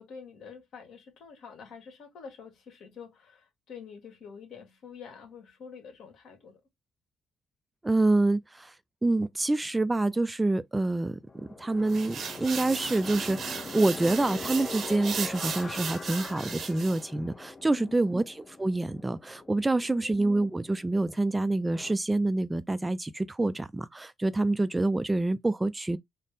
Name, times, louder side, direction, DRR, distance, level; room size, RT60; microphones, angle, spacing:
voice 1, 0.0-6.6 17.7-18.2 19.7-20.1, left 6 dB, 75° left, 1.6 m, -47 dB
voice 2, 7.8-8.7 9.0-26.0, right 2 dB, 15° right, 0.3 m, -27 dB
sound 1, 11.3-22.0, left 3 dB, 30° left, 0.6 m, -43 dB
sound 2, 11.9-17.0, right 6 dB, 60° right, 0.8 m, -36 dB
4.1 x 2.1 x 3.5 m
cardioid pair, 90°, 0 cm